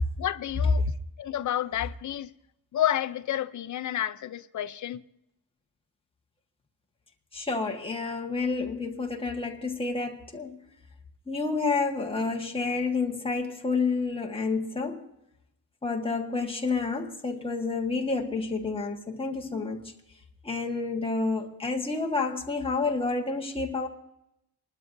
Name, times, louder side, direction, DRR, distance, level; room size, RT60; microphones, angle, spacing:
voice 1, 0.2-0.9 1.2-2.3 2.7-5.0, left 11 dB, 50° left, 0.5 m, -30 dB
voice 2, 7.3-10.6 11.3-15.1 15.8-19.9 20.4-23.9, left 4 dB, 15° left, 1.4 m, -29 dB
28.0 x 12.5 x 2.6 m
wide cardioid pair, 180°, 40 cm